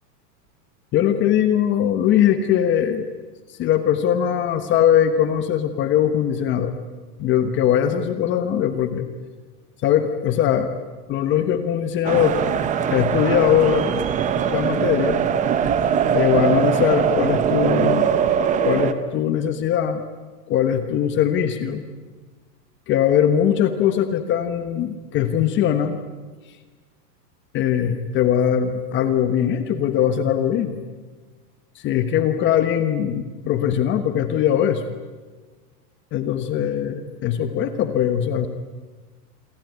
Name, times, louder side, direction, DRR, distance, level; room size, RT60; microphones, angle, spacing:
voice 1, 0.9-3.1 3.6-6.8 7.2-9.1 9.8-10.7 11.1-12.4 12.9-13.9 14.5-15.2 16.1-18.2 18.6-20.0 20.5-21.8 22.9-26.0 27.5-30.8 31.7-34.9 36.1-38.5, left 9 dB, 25° left, 9 dB, 1.3 m, -21 dB
sound 1, 12.0-18.9, right 8 dB, 15° right, 1.0 m, -21 dB
28.0 x 22.5 x 9.4 m, 1.3 s
supercardioid pair, 165°, 48 cm